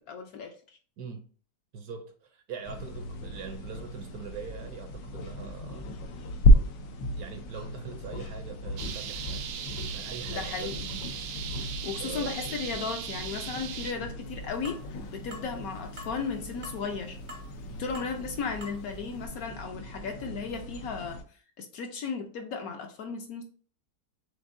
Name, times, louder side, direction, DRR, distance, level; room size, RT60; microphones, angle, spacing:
voice 1, 0.1-0.5 10.3-10.8 11.8-14.8 15.1-17.2 17.8-21.2 21.6-23.4, left 5 dB, 65° left, 1.0 m, -35 dB
voice 2, 1.7-5.9 7.2-9.5 9.9-10.8 12.0-12.4 14.0-14.1 17.6-17.9, right 5 dB, 70° right, 1.0 m, -42 dB
sound 1, 2.6-21.2, equal, 85° left, 1.3 m, -32 dB
sound 2, 8.8-13.9, right 8 dB, 85° right, 1.2 m, -38 dB
sound 3, 14.6-14.9 15.3-15.5 16.0-16.1 16.6-16.9 17.3-17.6 17.9-18.1 18.6-18.8 19.2-19.3, left 1 dB, 45° right, 0.6 m, -44 dB
5.3 x 3.4 x 2.5 m
omnidirectional pair, 1.9 m